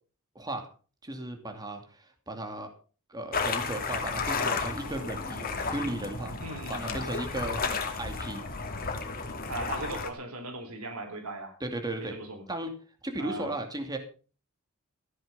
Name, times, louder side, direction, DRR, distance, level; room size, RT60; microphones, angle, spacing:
voice 1, 0.3-0.7 1.0-2.7 3.1-6.3 6.7-7.6 8.0-8.4 11.6-12.2 12.5-12.7 13.0-14.0, right 1 dB, 20° right, 5 dB, 2.5 m, -35 dB
sound 1, 3.3-10.1, left 4 dB, 40° left, 2.4 m, -33 dB
voice 2, 6.4-7.0 7.7-7.8 9.5-11.6 12.0-12.4 13.2-13.6, right 2 dB, 85° right, 6 dB, 3.8 m, -38 dB
15.0 x 10.0 x 5.5 m, 0.38 s
head